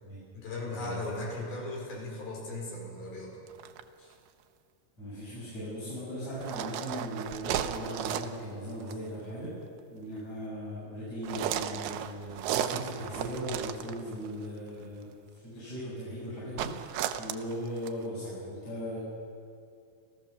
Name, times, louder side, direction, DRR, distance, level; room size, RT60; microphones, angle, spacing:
voice 1, 0.3-3.4 4.0-4.1, left 2 dB, 75° left, -2 dB, 6.7 m, -37 dB
sound 1, 3.5-3.8 6.3-8.4 8.8-9.1 11.2-14.3 16.6-18.0, right 10 dB, 85° right, 2.8 m, -34 dB
voice 2, 5.0-9.5 9.9-19.0, equal, 45° left, -8 dB, 8.4 m, -38 dB
28.5 x 14.5 x 6.7 m, 2.4 s
omnidirectional pair, 4.4 m